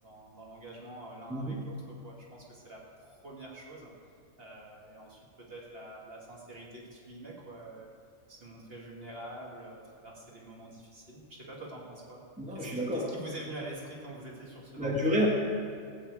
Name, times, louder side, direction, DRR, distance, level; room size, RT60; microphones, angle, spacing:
voice 1, 0.0-3.9 4.4-7.9 8.3-12.2 12.5-14.9, right 1 dB, 45° right, -3 dB, 2.2 m, -46 dB
voice 2, 1.3-1.6 12.4-13.1 14.8-15.3, equal, 5° right, -2 dB, 1.4 m, -29 dB
16.0 x 5.8 x 8.2 m, 2.2 s
omnidirectional pair, 1.4 m